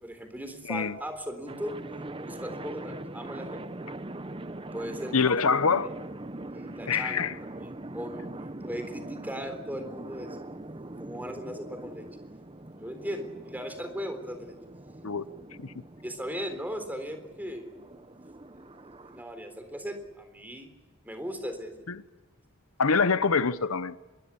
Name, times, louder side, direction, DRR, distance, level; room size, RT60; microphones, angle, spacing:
voice 1, 0.0-1.8 2.2-3.6 4.7-5.2 5.6-5.7 6.5-12.1 12.7-14.6 16.0-18.1 18.5-18.7 19.0-20.7 21.0-21.9, equal, 10° right, 3.8 m, -38 dB
sound 1, 1.5-19.2, right 2 dB, 25° right, 0.8 m, -42 dB
voice 2, 5.1-5.9 6.9-7.3 15.0-15.2 15.6-15.7 21.9-22.0 22.8-23.9, left 5 dB, 85° left, 0.9 m, -25 dB
26.5 x 22.0 x 8.5 m
head